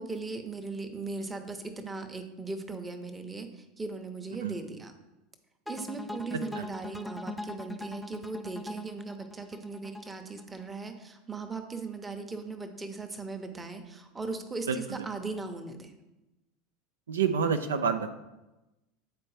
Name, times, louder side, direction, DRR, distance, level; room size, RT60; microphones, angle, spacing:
voice 1, 0.0-4.9 5.7-15.9, right 3 dB, 15° right, 6 dB, 0.8 m, -38 dB
sound 1, 5.7-10.8, left 2 dB, 5° left, 0.4 m, -41 dB
voice 2, 14.7-15.1 17.1-18.1, right 6 dB, 75° right, 7 dB, 0.4 m, -28 dB
8.5 x 4.4 x 3.2 m, 1.0 s
figure-of-eight pair, 75°, 0 cm